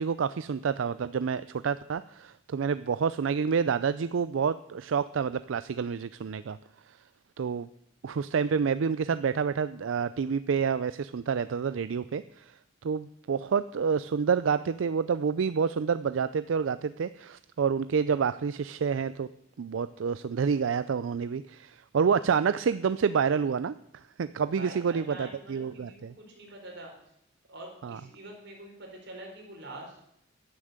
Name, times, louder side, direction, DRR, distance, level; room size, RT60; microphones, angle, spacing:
voice 1, 0.0-6.6 6.9-7.0 7.4-7.7 8.0-12.6 12.8-19.3 19.6-26.1 27.8-28.0, right 6 dB, 85° right, 14 dB, 0.4 m, -28 dB
voice 2, 24.5-26.9 27.5-30.0, right 1 dB, 65° right, 0 dB, 4.4 m, -45 dB
11.0 x 9.8 x 8.0 m, 0.75 s
head